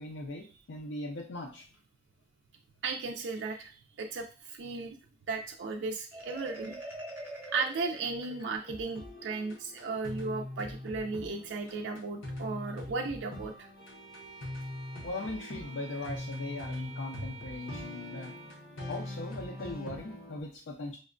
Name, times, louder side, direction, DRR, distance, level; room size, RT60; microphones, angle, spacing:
voice 1, 0.0-1.7 15.0-18.5 18.9-21.0, left 2 dB, 70° left, 1 dB, 0.4 m, -39 dB
voice 2, 2.8-5.0 5.3-6.7 7.5-13.7, right 4 dB, 65° right, 3 dB, 0.3 m, -35 dB
Marimba xylophone, 6.1-8.9, right 1 dB, 10° right, 0.8 m, -44 dB
sound 1, 8.6-20.4, left 1 dB, 90° left, 0.8 m, -42 dB
Bowed string instrument, 13.8-18.6, right 5 dB, 20° left, 0.5 m, -50 dB
5.0 x 2.1 x 2.4 m, 0.36 s
head